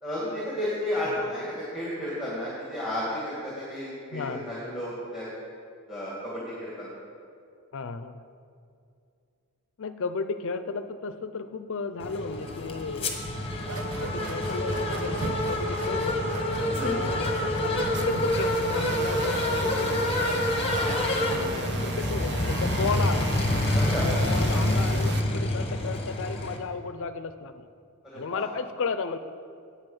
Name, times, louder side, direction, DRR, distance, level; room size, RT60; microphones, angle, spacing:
voice 1, 0.0-5.3 5.9-6.9 16.7-17.1 20.7-21.0 23.7-24.1 28.0-28.5, left 1 dB, ahead, -7 dB, 1.9 m, -33 dB
voice 2, 4.1-4.6 7.7-8.2 9.8-13.2 13.9-20.2 21.2-21.5 21.8-23.3 23.9-27.6 28.1-29.2, left 4 dB, 60° left, 11 dB, 0.5 m, -34 dB
sound 1, 12.0-26.6, left 1 dB, 25° left, 1.0 m, -27 dB
sound 2, 13.6-21.4, right 2 dB, 80° right, 1.0 m, -40 dB
sound 3, 17.8-25.2, right 4 dB, 50° right, 0.6 m, -37 dB
9.0 x 8.5 x 5.4 m, 2.4 s
head